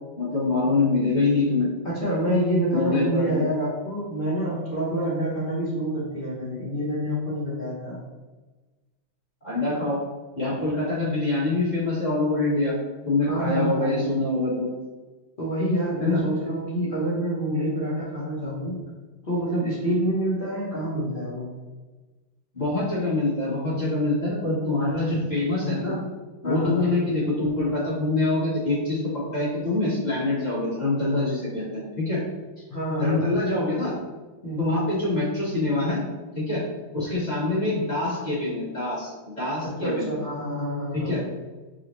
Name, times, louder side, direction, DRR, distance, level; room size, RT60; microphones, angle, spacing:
voice 1, 0.2-1.7 2.7-3.4 9.4-10.0 10.4-12.8 13.0-14.7 16.0-16.2 22.5-26.0 26.4-32.2 33.0-33.9 34.6-36.0 36.3-36.6 36.9-40.1 40.9-41.2, left 2 dB, 30° left, -8 dB, 0.8 m, -25 dB
voice 2, 1.8-8.0 13.3-14.2 15.4-18.8 19.2-21.6 26.4-26.9 32.7-33.3 34.4-34.6 39.8-41.2, right 1 dB, 70° left, -9 dB, 0.5 m, -27 dB
5.4 x 2.1 x 3.0 m, 1.2 s
omnidirectional pair, 2.3 m